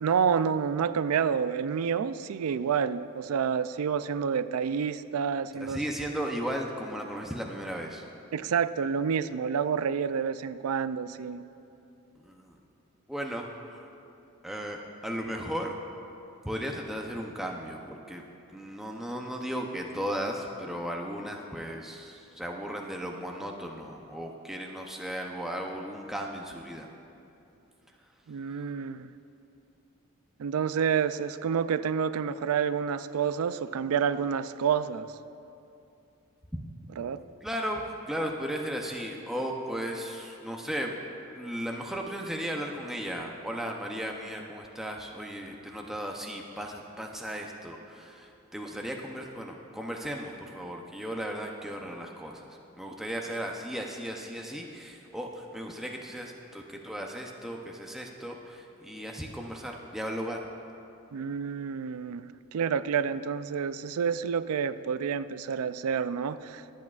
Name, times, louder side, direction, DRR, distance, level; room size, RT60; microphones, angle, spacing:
voice 1, 0.0-5.8 8.3-11.4 28.3-29.1 30.4-35.1 37.0-37.2 61.1-66.6, right 7 dB, 80° right, 14 dB, 0.4 m, -29 dB
voice 2, 5.5-8.0 12.2-12.6 13.1-13.8 14.4-15.7 16.4-18.2 18.5-26.9 36.8-37.0 37.4-41.0 41.3-52.5 52.8-60.4, equal, ahead, 0 dB, 0.6 m, -36 dB
24.5 x 8.4 x 2.4 m, 2.7 s
head